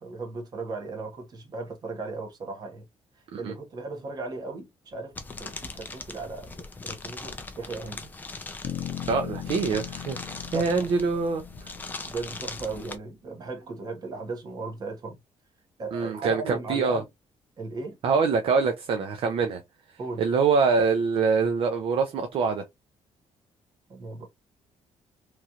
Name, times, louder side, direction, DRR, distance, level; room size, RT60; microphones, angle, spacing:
voice 1, 0.0-2.8 3.4-6.5 6.8-8.1 10.5-10.9 12.0-15.2 15.8-17.0 17.6-18.0 20.0-20.2 23.9-24.3, right 3 dB, 35° right, 1.0 m, -36 dB
sound 1, 5.1-13.0, left 3 dB, 15° left, 0.4 m, -40 dB
sound 2, 8.6-12.7, left 10 dB, 55° left, 0.7 m, -39 dB
voice 2, 9.1-11.7 15.9-17.0 18.0-19.6 20.2-22.6, right 5 dB, 55° right, 0.5 m, -25 dB
3.0 x 2.4 x 2.8 m
cardioid pair, 165°, 11 cm